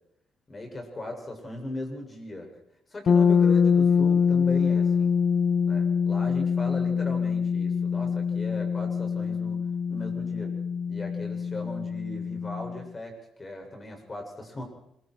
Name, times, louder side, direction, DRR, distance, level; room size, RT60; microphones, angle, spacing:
voice 1, 0.5-2.5 2.9-5.1 5.6-9.6 9.9-10.5 10.9-13.1 13.4-14.6, left 1 dB, 30° left, 3 dB, 7.0 m, -38 dB
sound 1, 3.1-12.8, left 6 dB, 55° left, 0.9 m, -24 dB
26.0 x 22.5 x 4.8 m, 0.78 s
cardioid pair, 90°, 0 cm